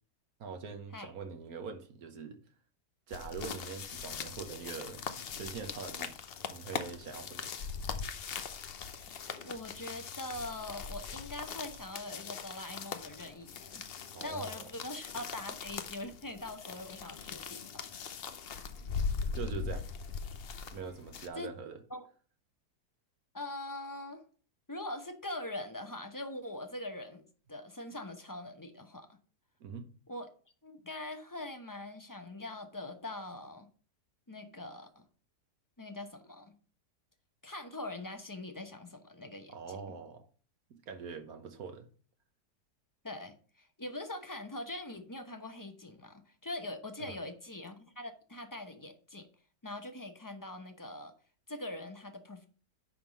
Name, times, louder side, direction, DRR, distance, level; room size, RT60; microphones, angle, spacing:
voice 1, 0.4-2.4 3.1-5.0 5.3-6.1 6.5-7.5 14.1-14.6 15.1-15.2 19.3-19.9 20.7-21.8 29.6-29.9 39.5-40.3 40.7-41.9 47.0-47.2, right 5 dB, 65° right, 1.5 m, -43 dB
sound 1, 3.1-21.3, left 6 dB, 55° left, 0.6 m, -41 dB
voice 2, 9.4-13.9 14.2-18.2 21.3-21.5 21.9-22.1 23.3-24.2 24.7-29.2 30.1-30.3 30.6-33.7 34.3-35.0 35.8-36.5 37.4-39.8 43.0-49.3 49.6-51.1 51.5-52.5, left 2 dB, 15° left, 0.7 m, -43 dB
10.0 x 3.7 x 6.1 m
omnidirectional pair, 1.8 m